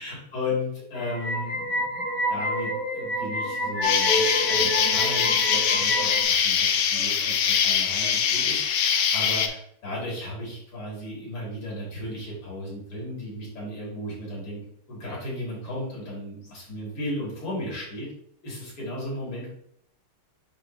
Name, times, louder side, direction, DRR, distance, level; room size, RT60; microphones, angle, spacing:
voice 1, 0.0-14.6 14.9-18.1 18.4-19.5, left 1 dB, 90° left, -5 dB, 3.7 m, -35 dB
sound 1, 0.9-6.2, left 1 dB, 30° left, 1.7 m, -28 dB
Insect, 3.8-9.5, left 7 dB, 70° left, 1.0 m, -23 dB
9.8 x 3.3 x 3.0 m, 0.71 s
omnidirectional pair, 2.4 m